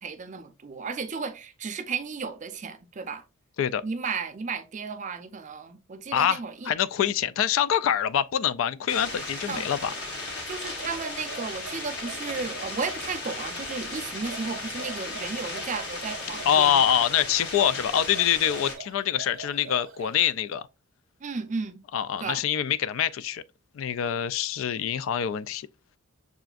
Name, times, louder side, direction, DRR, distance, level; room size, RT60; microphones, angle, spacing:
voice 1, 0.0-3.2 3.8-6.7 9.5-9.7 10.5-17.0 21.2-21.8 22.2-22.5, right 5 dB, 40° right, 0.5 m, -34 dB
voice 2, 6.1-9.9 16.5-20.6 21.9-23.4 23.7-25.7, left 9 dB, 75° left, 0.3 m, -25 dB
sound 1, 8.9-18.7, left 2 dB, 60° left, 1.3 m, -36 dB
sound 2, 10.6-13.1 14.1-16.6 17.7-20.3, right 5 dB, 80° right, 0.7 m, -44 dB
6.7 x 2.5 x 2.3 m
head